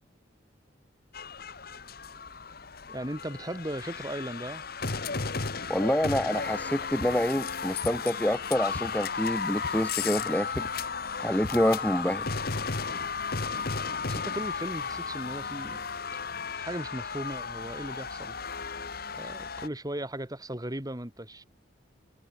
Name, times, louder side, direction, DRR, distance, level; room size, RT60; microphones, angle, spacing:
sound 1, 1.1-19.7, left 5 dB, 55° left, 1.7 m, -34 dB
voice 1, 2.9-4.6 14.0-15.8 16.6-18.4 19.2-21.4, right 1 dB, 20° right, 3.2 m, -37 dB
voice 2, 5.7-10.7 11.2-12.4, equal, 10° left, 1.3 m, -27 dB
sound 2, 5.9-15.7, left 3 dB, 75° left, 6.1 m, -54 dB
head